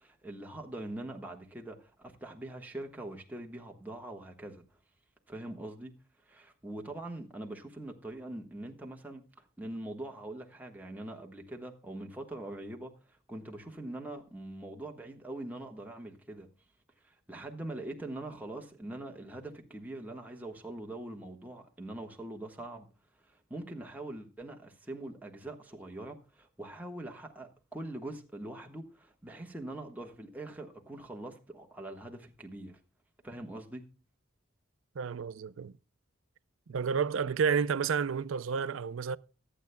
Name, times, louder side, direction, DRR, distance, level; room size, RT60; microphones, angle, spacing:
voice 1, 0.0-4.6 5.3-5.9 6.3-9.2 9.6-16.5 17.0-22.9 23.3-32.8 33.2-33.8, right 1 dB, 10° right, 1.4 m, -43 dB
voice 2, 35.0-35.7 36.7-39.2, right 6 dB, 80° right, 0.5 m, -30 dB
24.0 x 8.4 x 2.2 m
head